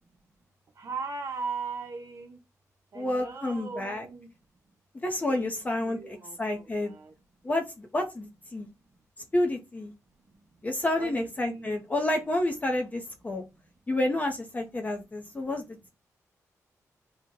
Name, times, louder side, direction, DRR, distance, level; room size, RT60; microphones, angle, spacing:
voice 1, 0.8-2.4 2.9-4.3 5.3-7.1 11.0-11.8, right 4 dB, 60° right, 0.8 m, -39 dB
voice 2, 2.9-4.1 5.0-6.9 7.4-8.7 9.3-9.9 10.6-13.4 13.9-15.6, left 1 dB, 25° left, 0.5 m, -29 dB
2.8 x 2.0 x 3.6 m
cardioid pair, 75°, 6 cm